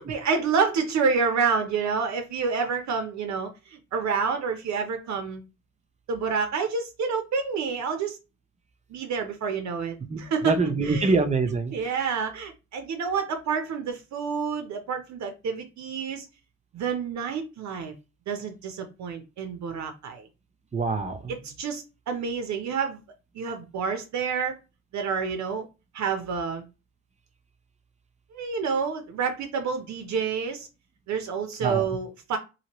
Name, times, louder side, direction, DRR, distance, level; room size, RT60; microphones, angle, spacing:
voice 1, 0.0-5.4 6.1-8.2 8.9-11.1 11.7-16.3 16.7-17.9 18.3-20.3 21.3-23.0 23.3-24.6 24.9-25.7 25.9-26.7 28.3-30.7 31.1-32.4, right 5 dB, 65° right, 6 dB, 0.7 m, -28 dB
voice 2, 10.5-11.7 20.7-21.3 31.6-31.8, right 3 dB, 25° right, 8 dB, 0.6 m, -24 dB
2.8 x 2.8 x 2.9 m, 0.29 s
cardioid pair, 90°, 30 cm